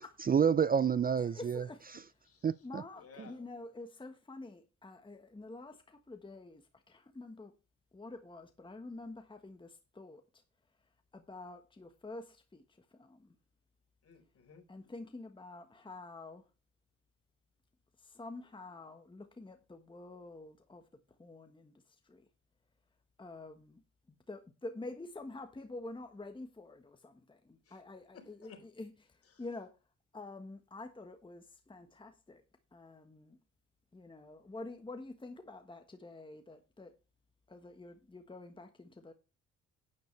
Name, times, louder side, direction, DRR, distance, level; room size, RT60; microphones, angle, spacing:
voice 1, 0.2-1.7 1.9-2.0 2.4-2.8 3.2-3.3, right 7 dB, 30° right, 0.5 m, -29 dB
voice 2, 1.3-1.9 2.6-7.5 7.9-10.2 11.1-12.6 12.9-13.3 14.7-16.4 18.0-20.8 21.2-21.7 22.1-22.2 23.2-23.8 24.3-28.5 28.8-28.9 29.4-29.7 30.1-32.4 32.7-33.4 33.9-36.9 37.5-39.1, left 2 dB, 15° left, 1.4 m, -48 dB
voice 3, 1.9-2.7 2.9-3.5 14.0-14.6 27.6-27.9 28.1-28.7 29.2-29.5, left 5 dB, 50° left, 4.4 m, -57 dB
11.5 x 9.4 x 3.3 m
cardioid pair, 90°, 30 cm